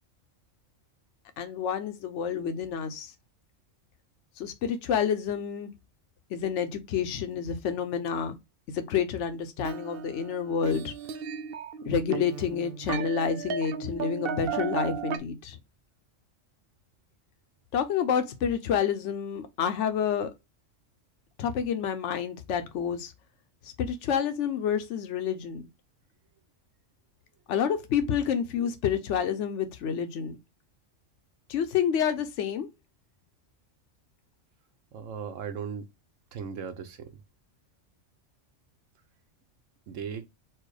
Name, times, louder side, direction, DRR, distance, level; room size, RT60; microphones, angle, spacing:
voice 1, 1.4-3.1 4.4-5.7 6.3-8.4 8.7-10.9 11.8-15.6 17.7-20.3 21.4-23.1 23.8-25.7 27.5-30.4 31.5-32.7, left 7 dB, 70° left, 1.0 m, -29 dB
sound 1, 9.6-15.2, right 7 dB, 60° right, 0.7 m, -35 dB
voice 2, 34.9-35.9 36.3-37.1 39.9-40.3, right 7 dB, 85° right, 1.2 m, -37 dB
4.5 x 2.3 x 4.8 m
omnidirectional pair, 1.3 m